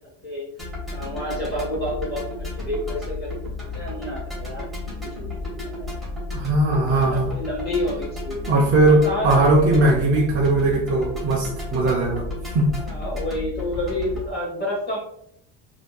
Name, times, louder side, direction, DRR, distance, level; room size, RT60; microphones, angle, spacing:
sound 1, 0.6-14.3, left 2 dB, ahead, 1.4 m, -32 dB
voice 1, 0.9-2.2 2.6-4.7 5.0-5.3 5.6-5.9 6.6-8.4 9.0-9.5 12.8-15.0, left 1 dB, 20° left, -5 dB, 0.8 m, -29 dB
voice 2, 6.3-7.3 8.5-12.7, right 2 dB, 30° right, -3 dB, 0.5 m, -19 dB
3.5 x 2.7 x 2.2 m, 0.75 s
cardioid pair, 145°, 44 cm